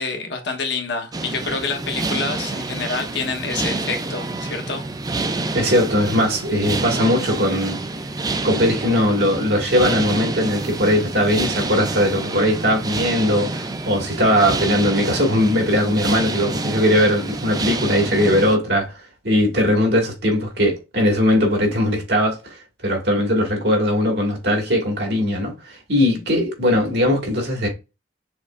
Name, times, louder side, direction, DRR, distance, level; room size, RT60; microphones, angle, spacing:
voice 1, 0.0-4.8, left 4 dB, 80° left, 1.1 m, -27 dB
sound 1, 1.1-18.6, right 3 dB, 20° right, 0.4 m, -27 dB
voice 2, 5.5-7.8 8.4-18.9 19.2-27.7, left 1 dB, 65° right, 1.9 m, -19 dB
6.3 x 3.1 x 2.4 m
head